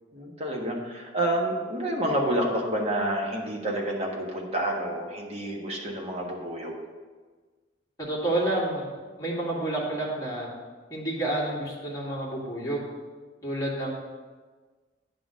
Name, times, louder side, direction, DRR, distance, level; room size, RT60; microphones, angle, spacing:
voice 1, 0.1-6.7, right 1 dB, 35° right, -1 dB, 1.4 m, -29 dB
voice 2, 8.0-8.9 9.2-10.5 10.9-12.9 13.4-13.9, right 1 dB, 20° left, -6 dB, 2.1 m, -29 dB
9.8 x 3.9 x 6.4 m, 1.4 s
head